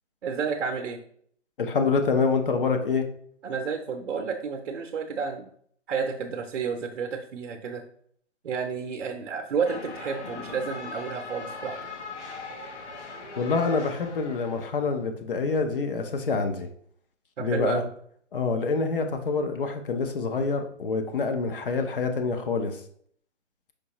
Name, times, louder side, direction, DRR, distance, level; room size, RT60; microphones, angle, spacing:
voice 1, 0.2-1.0 3.4-5.5 5.9-7.8 8.4-11.8 17.4-17.9, right 5 dB, 55° right, 3 dB, 0.7 m, -31 dB
voice 2, 1.6-3.1 13.4-16.7 17.4-17.8 18.3-22.8, left 4 dB, 45° left, 6 dB, 0.7 m, -26 dB
sound 1, 9.6-14.7, left 4 dB, 70° left, 1.1 m, -40 dB
5.2 x 3.1 x 2.9 m, 0.62 s
hypercardioid pair, 150°, 37 cm